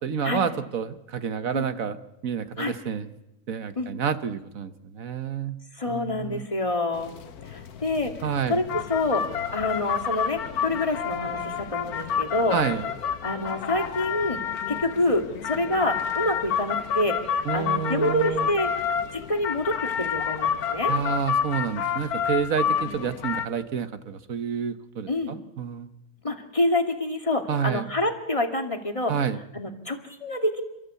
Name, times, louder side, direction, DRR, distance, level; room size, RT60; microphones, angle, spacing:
voice 1, 0.0-2.0 2.2-3.1 3.5-5.6 5.9-6.4 8.2-8.6 12.5-12.9 17.4-18.5 20.9-25.9 27.5-27.9 29.1-29.4, right 7 dB, 65° right, 11 dB, 1.6 m, -29 dB
voice 2, 5.7-7.2 7.4-8.1 8.5-8.6 8.9-12.6 13.2-14.4 14.7-18.7 19.1-20.9 25.1-25.3 26.2-29.1 29.5-30.6, left 2 dB, 20° left, 5 dB, 2.1 m, -27 dB
sound 1, 6.9-23.5, left 7 dB, 85° left, 1.6 m, -29 dB
28.5 x 14.0 x 8.3 m, 0.90 s
omnidirectional pair, 1.6 m